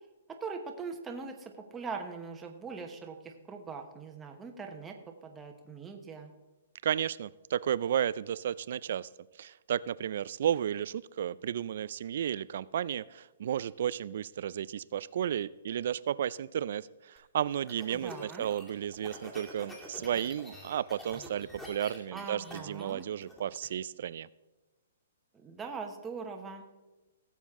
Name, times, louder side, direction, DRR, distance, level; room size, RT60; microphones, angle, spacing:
voice 1, 0.3-5.0 5.2-6.3 17.9-18.5 22.1-23.1 25.3-26.7, right 5 dB, 10° right, 3 dB, 1.1 m, -41 dB
voice 2, 6.8-9.1 9.4-24.3, right 10 dB, 60° right, 19 dB, 0.4 m, -33 dB
sound 1, 17.2-23.7, left 1 dB, 10° left, 2.3 m, -48 dB
17.5 x 7.3 x 3.6 m, 1.1 s
hypercardioid pair, 155°, 0 cm